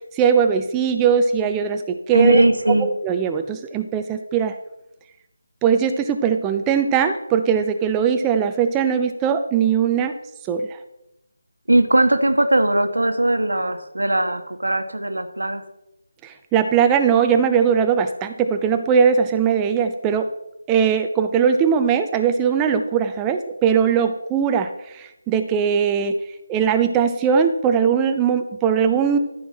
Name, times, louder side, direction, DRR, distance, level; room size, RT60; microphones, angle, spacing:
voice 1, 0.1-2.4 3.0-4.5 5.6-10.1 10.5-10.8 16.2-20.3 20.7-26.1 26.5-29.2, right 7 dB, 15° right, 6 dB, 0.5 m, -20 dB
voice 2, 2.1-2.9 11.7-15.6, right 1 dB, 80° right, 7 dB, 1.4 m, -19 dB
13.0 x 4.6 x 6.2 m, 0.87 s
figure-of-eight pair, 155°, 0 cm